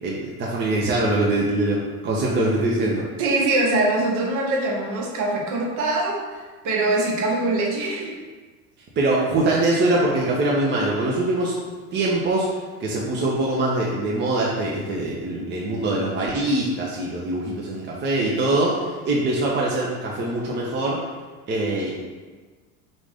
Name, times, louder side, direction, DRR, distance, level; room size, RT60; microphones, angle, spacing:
voice 1, 0.0-3.0 9.0-11.5 11.9-12.5 12.8-21.0 21.5-22.0, right 2 dB, 25° right, -3 dB, 0.7 m, -23 dB
voice 2, 3.2-8.1, right 2 dB, 45° right, -1 dB, 1.1 m, -23 dB
4.9 x 2.6 x 3.4 m, 1.4 s
hypercardioid pair, 85°, 42 cm